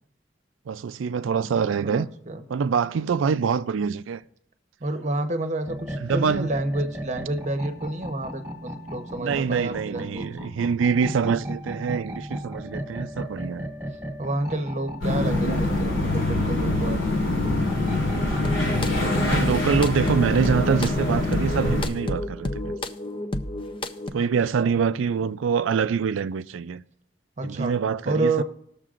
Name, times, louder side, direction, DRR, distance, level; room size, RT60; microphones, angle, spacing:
voice 1, 0.7-2.1 2.5-4.2 6.0-6.5 9.2-13.7 19.3-22.7 24.1-26.8 27.4-28.4, right 6 dB, 85° right, 0.4 m, -25 dB
voice 2, 1.8-2.4 4.8-10.3 14.2-17.1 24.2-24.8 27.4-27.7 28.0-28.4, right 2 dB, 40° right, 0.9 m, -29 dB
sound 1, 5.6-19.4, equal, 15° right, 1.5 m, -36 dB
sound 2, 15.0-21.9, left 2 dB, 85° left, 3.6 m, -24 dB
sound 3, 18.1-24.1, left 1 dB, 30° left, 0.5 m, -31 dB
20.0 x 6.7 x 2.5 m
head